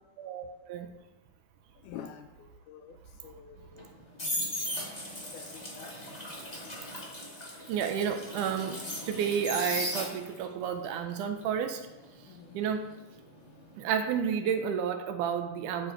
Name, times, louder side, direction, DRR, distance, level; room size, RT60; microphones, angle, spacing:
voice 1, 0.2-0.9 7.7-11.9 12.5-12.9 13.8-15.9, right 7 dB, 80° right, 6 dB, 2.0 m, -31 dB
voice 2, 1.9-2.3 2.7-3.0 3.2-3.9 5.3-5.9 12.3-12.6, left 9 dB, 80° left, 7 dB, 1.9 m, -46 dB
sound 1, 3.7-10.5 10.8-13.7 14.0-14.3, left 1 dB, 60° left, 0.4 m, -37 dB
11.0 x 3.9 x 4.3 m, 0.99 s
omnidirectional pair, 3.8 m